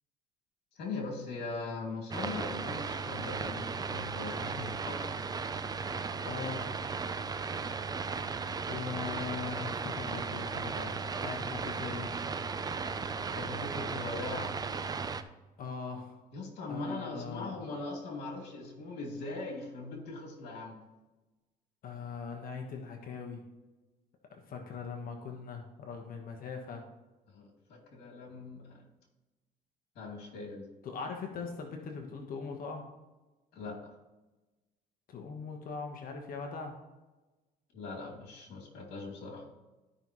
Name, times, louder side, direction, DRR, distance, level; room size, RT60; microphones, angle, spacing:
voice 1, 0.8-5.0 13.3-14.5 16.3-20.8 27.3-28.9 29.9-30.7 33.5-34.0 37.7-39.5, left 3 dB, 75° left, -1 dB, 2.7 m, -40 dB
Radio Static Short Wave very quiet, 2.1-15.2, right 5 dB, 25° right, 0.5 m, -36 dB
voice 2, 5.9-6.7 8.7-12.1 15.6-16.2 16.7-17.6 21.8-23.4 24.3-26.8 30.8-32.8 35.1-36.8, left 5 dB, 60° left, 3 dB, 1.2 m, -41 dB
13.0 x 5.5 x 3.1 m, 1.1 s
cardioid pair, 110°, 17 cm